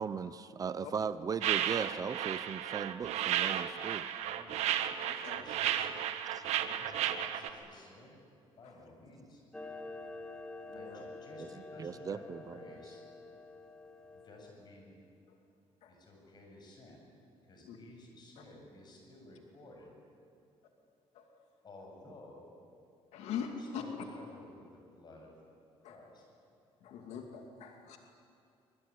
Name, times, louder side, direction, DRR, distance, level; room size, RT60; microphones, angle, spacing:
voice 1, 0.0-4.1 4.9-5.0 6.3-6.4 11.8-12.6, right 6 dB, 35° right, 14 dB, 0.7 m, -38 dB
sound 1, 1.4-7.5, right 11 dB, 85° right, 1.4 m, -33 dB
voice 2, 4.2-4.8 5.3-5.9 6.4-8.2 8.6-9.4 10.7-13.0 14.1-15.0 15.9-17.1 17.4-20.0 21.6-22.4 23.4-25.3 25.9-26.2, left 2 dB, 40° left, 1 dB, 7.5 m, -54 dB
voice 3, 5.1-5.4 8.6-8.7 10.7-11.0 15.8-15.9 17.6-17.8 18.4-18.5 21.1-21.2 23.1-23.8 25.8-26.0 26.8-28.0, left 7 dB, 85° left, 3 dB, 2.5 m, -42 dB
Clock, 9.5-14.5, left 2 dB, 5° left, 2.6 m, -48 dB
24.0 x 23.0 x 9.9 m, 2.5 s
cardioid pair, 135°, 11 cm